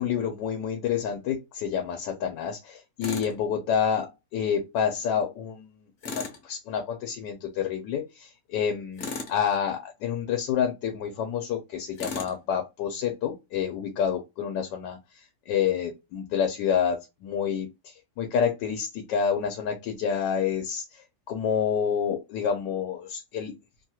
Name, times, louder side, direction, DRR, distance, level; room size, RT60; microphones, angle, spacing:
voice 1, 0.0-5.7 6.1-15.0 15.5-17.7 18.2-20.8 21.3-23.5, left 8 dB, 90° left, 1.3 m, -28 dB
Tools, 3.0-3.3 6.0-6.4 9.0-9.4 12.0-12.4, left 4 dB, 60° left, 0.8 m, -35 dB
3.2 x 2.3 x 2.8 m
omnidirectional pair, 1.9 m